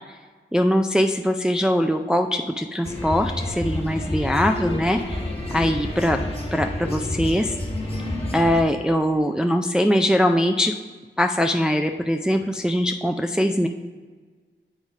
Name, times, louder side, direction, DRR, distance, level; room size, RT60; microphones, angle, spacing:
voice 1, 0.5-5.2 5.5-6.2 6.5-7.5 8.3-10.7 11.2-13.7, equal, 5° right, 4 dB, 0.4 m, -22 dB
sound 1, 2.8-8.6, left 1 dB, 30° left, 1.4 m, -29 dB
8.1 x 4.1 x 4.9 m, 1.4 s
wide cardioid pair, 70°, 20 cm